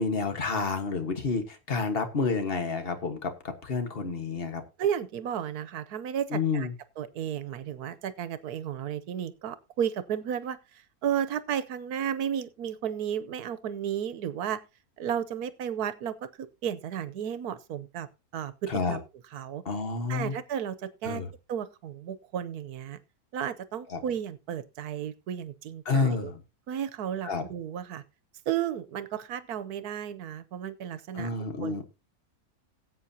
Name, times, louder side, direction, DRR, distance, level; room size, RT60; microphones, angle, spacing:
voice 1, 0.0-4.6 6.3-6.7 18.7-19.0 19.6-20.3 21.0-21.3 23.9-24.0 25.8-26.4 27.2-27.4 31.1-31.8, left 4 dB, 40° left, 1.5 m, -29 dB
voice 2, 4.8-6.7 7.0-10.6 11.0-14.6 15.0-18.1 18.3-19.0 19.3-19.6 20.1-21.2 21.5-23.0 23.3-26.3 26.7-28.0 28.5-31.3 31.6-31.8, right 9 dB, 80° right, 1.3 m, -33 dB
18.5 x 8.3 x 2.8 m
omnidirectional pair, 1.6 m